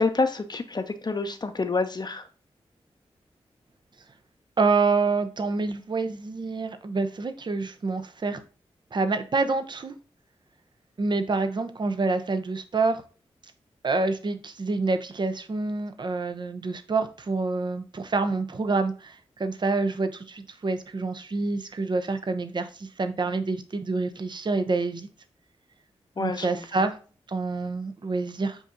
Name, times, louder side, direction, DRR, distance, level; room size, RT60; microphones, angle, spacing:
voice 1, 0.0-2.3 26.2-26.5, left 3 dB, 40° left, 0.7 m, -27 dB
voice 2, 4.6-8.4 8.9-9.9 11.0-13.0 13.8-25.1 26.2-27.0 27.3-28.6, right 3 dB, 45° right, 0.6 m, -27 dB
7.1 x 2.7 x 2.6 m
cardioid pair, 45°, 11 cm